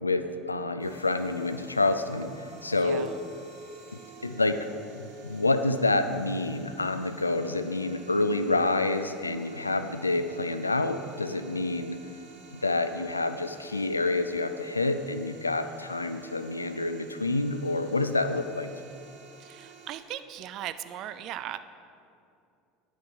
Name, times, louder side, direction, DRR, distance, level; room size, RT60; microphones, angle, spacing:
voice 1, 0.0-3.1 3.9-4.7 4.9-12.0 12.5-18.7, left 2 dB, 85° left, 10 dB, 0.3 m, -28 dB
sound 1, 0.8-20.0, right 5 dB, 60° right, 1.6 m, -52 dB
voice 2, 2.7-3.2 19.4-21.6, right 12 dB, 45° right, 12 dB, 0.4 m, -38 dB
10.0 x 6.2 x 4.7 m, 2.5 s
figure-of-eight pair, 70°, 0 cm